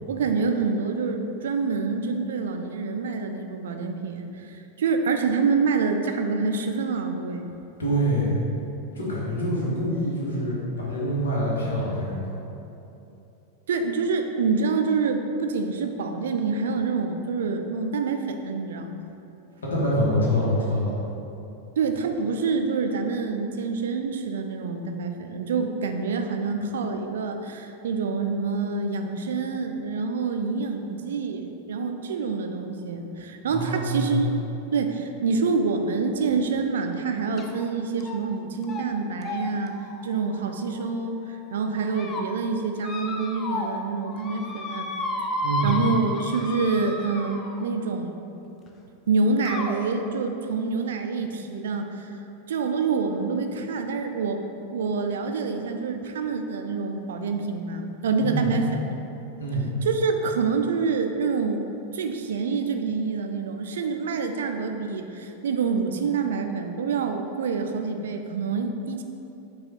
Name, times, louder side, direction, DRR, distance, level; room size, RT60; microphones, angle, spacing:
voice 1, 0.1-7.5 13.7-19.0 21.8-34.4 34.7-39.8 40.0-44.9 45.6-48.2 49.1-52.1 52.5-54.4 54.7-58.9 59.8-61.7 61.9-69.0, right 4 dB, 60° right, 5 dB, 0.3 m, -27 dB
voice 2, 7.8-8.4 8.9-12.3 19.6-21.0 33.5-34.3 45.4-45.8 58.2-58.5 59.4-59.7, equal, 70° left, -6 dB, 1.1 m, -25 dB
sound 1, 37.4-37.6 38.0-38.4 38.6-38.9 39.2-41.1 41.7-42.2 42.8-43.8 44.1-47.7 48.7-48.8 49.5-49.8, left 2 dB, 25° left, 0.4 m, -33 dB
4.9 x 2.4 x 4.1 m, 2.8 s
figure-of-eight pair, 90°, 0 cm